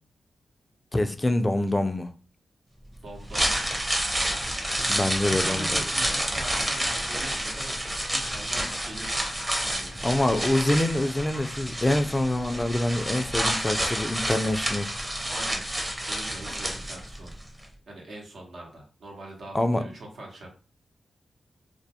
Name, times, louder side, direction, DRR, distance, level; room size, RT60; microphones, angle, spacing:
voice 1, 0.9-2.1 4.9-5.8 10.0-14.9 19.5-19.8, left 1 dB, 20° left, 0.3 m, -25 dB
voice 2, 3.0-3.5 5.1-7.8 8.1-9.2 9.6-10.1 15.3-15.6 16.0-17.3 17.9-20.5, right 1 dB, 75° right, 0.9 m, -42 dB
sound 1, 3.1-17.3 17.6-17.7, right 1 dB, 15° right, 0.7 m, -29 dB
2.3 x 2.2 x 2.7 m
cardioid pair, 60°, 0 cm